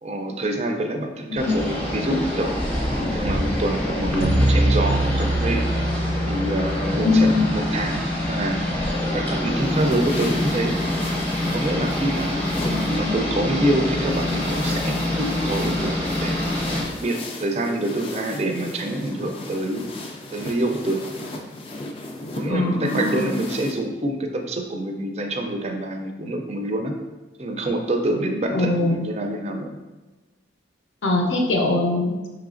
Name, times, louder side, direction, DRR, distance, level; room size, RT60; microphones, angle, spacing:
voice 1, 0.0-2.5 3.0-5.6 6.3-8.6 9.1-10.8 11.5-12.5 12.9-16.4 16.7-19.8 20.3-21.0 22.3-27.0 27.4-29.7, right 1 dB, 35° right, 4 dB, 0.4 m, -26 dB
sound 1, 1.4-16.8, left 1 dB, 10° left, 0.7 m, -25 dB
sound 2, 4.2-8.5, right 1 dB, 90° right, 0.6 m, -24 dB
voice 2, 7.0-7.6 12.7-13.2 22.5-23.3 28.5-29.0 31.0-32.1, left 2 dB, 85° left, 1 dB, 0.7 m, -21 dB
sound 3, 8.8-23.7, left 2 dB, 30° left, 0.4 m, -37 dB
4.8 x 3.1 x 2.5 m, 1.2 s
head